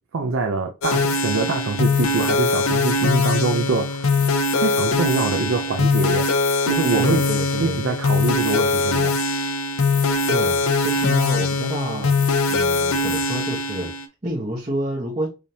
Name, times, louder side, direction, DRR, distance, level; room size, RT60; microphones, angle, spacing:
voice 1, 0.1-4.1 4.6-6.3 6.7-7.2 7.6-9.2, right 4 dB, 75° right, 0.5 m, -24 dB
sound 1, 0.8-14.1, left 3 dB, 85° left, 0.6 m, -21 dB
voice 2, 7.0-7.8 10.3-12.1 12.5-15.3, right 1 dB, 30° right, 1.0 m, -28 dB
5.0 x 2.7 x 2.8 m
head